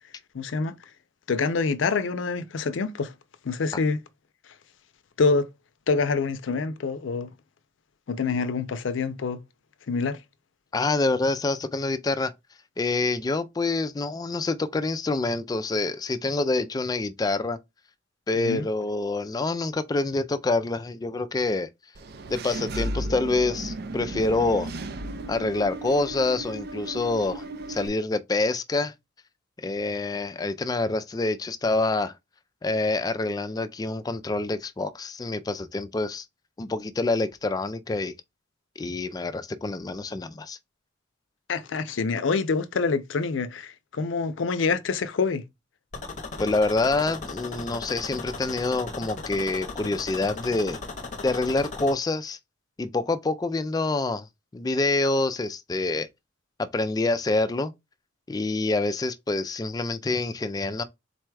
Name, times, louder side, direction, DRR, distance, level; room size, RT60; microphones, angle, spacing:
voice 1, 0.3-0.8 1.3-3.1 3.4-4.0 5.2-5.5 5.9-7.3 8.1-9.4 9.9-10.2 18.3-18.7 41.5-45.5, left 4 dB, 80° left, 0.5 m, -26 dB
voice 2, 10.7-12.3 12.8-17.6 18.3-21.7 22.3-24.7 25.3-28.9 29.6-32.1 32.6-36.3 36.6-38.2 38.8-40.6 46.4-50.8 51.2-52.4 52.8-54.3 54.5-56.1 56.6-57.7 58.3-60.8, left 3 dB, 20° left, 0.3 m, -26 dB
Engine / Mechanisms, 21.9-27.9, right 1 dB, 55° right, 0.5 m, -35 dB
sound 1, 45.9-51.9, left 3 dB, 40° left, 0.7 m, -37 dB
4.1 x 2.2 x 4.6 m
head